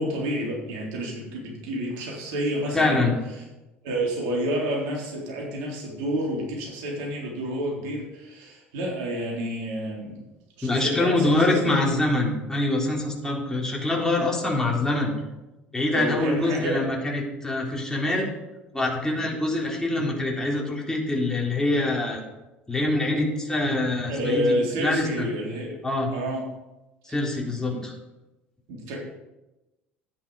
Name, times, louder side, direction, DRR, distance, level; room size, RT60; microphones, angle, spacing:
voice 1, 0.0-3.1 3.4-3.5 3.8-10.2 10.6-11.4 11.7-11.8 15.9-16.8 24.1-25.7 26.1-26.4 27.7-27.8 28.7-29.0, equal, 60° right, -3 dB, 3.9 m, -29 dB
voice 2, 2.7-3.2 10.6-15.1 15.7-18.3 18.7-22.2 22.7-25.3 25.8-26.1 27.1-27.9, left 2 dB, 10° left, -2 dB, 3.5 m, -24 dB
10.5 x 9.8 x 5.1 m, 1.0 s
figure-of-eight pair, 65°, 6 cm